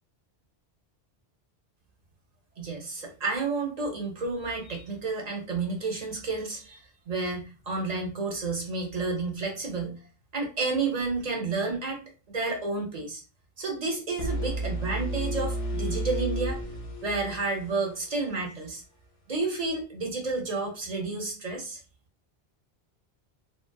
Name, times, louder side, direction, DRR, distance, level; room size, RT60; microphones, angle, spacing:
voice 1, 2.6-6.8 7.1-10.0 10.3-13.2 13.6-16.6 17.0-18.8 19.3-21.8, right 3 dB, 45° right, 3 dB, 0.7 m, -31 dB
sound 1, 14.2-18.1, right 1 dB, 45° left, 0.4 m, -32 dB
2.6 x 2.1 x 2.2 m, 0.32 s
omnidirectional pair, 1.1 m